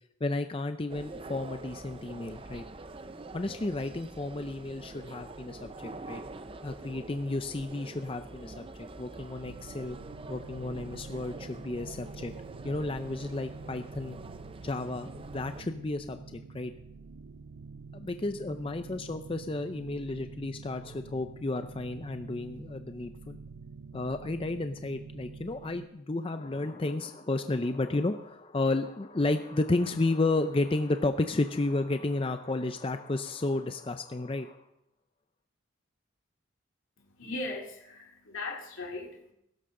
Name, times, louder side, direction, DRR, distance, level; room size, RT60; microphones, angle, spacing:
voice 1, 0.2-2.6 3.3-6.2 6.6-10.0 10.3-12.3 12.6-14.2 14.6-16.7 17.9-23.4 23.9-34.6, left 2 dB, 30° left, 8 dB, 0.5 m, -32 dB
sound 1, 0.9-15.6, right 2 dB, 25° right, 0.5 m, -45 dB
sound 2, 9.4-25.9, right 4 dB, 80° right, 0.5 m, -47 dB
voice 2, 37.0-39.3, left 2 dB, 85° left, -1 dB, 2.4 m, -39 dB
16.5 x 13.5 x 3.8 m, 0.78 s
head